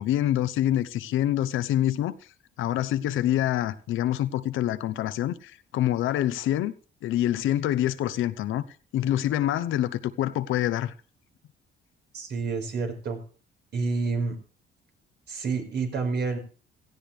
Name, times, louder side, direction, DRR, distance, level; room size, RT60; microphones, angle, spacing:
voice 1, 0.0-2.1 2.6-6.7 7.0-8.7 8.9-10.9, left 12 dB, 85° left, 0.9 m, -26 dB
voice 2, 12.1-13.2 13.7-14.4 15.3-16.4, right 4 dB, 60° right, 4.8 m, -28 dB
17.0 x 15.0 x 3.4 m
cardioid pair, 90°, 20 cm